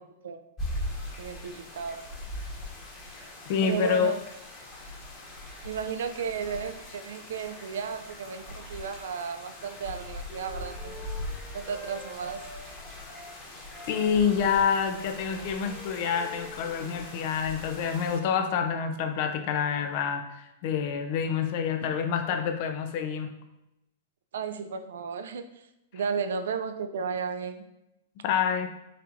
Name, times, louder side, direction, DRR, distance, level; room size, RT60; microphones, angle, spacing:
sound 1, 0.6-18.2, left 1 dB, 35° left, 1.6 m, -41 dB
voice 1, 1.2-2.0 3.6-4.2 5.6-11.1 11.5-12.4 24.3-25.4 25.9-27.6, right 6 dB, 75° right, 9 dB, 0.4 m, -34 dB
voice 2, 3.5-4.1 13.9-23.3 28.2-28.7, left 7 dB, 55° left, 6 dB, 0.6 m, -27 dB
Wind instrument woodwind instrument, 10.2-13.4 13.7-17.5, right 1 dB, 5° left, 0.7 m, -48 dB
5.6 x 3.7 x 2.5 m, 0.89 s
hypercardioid pair, 120°, 0 cm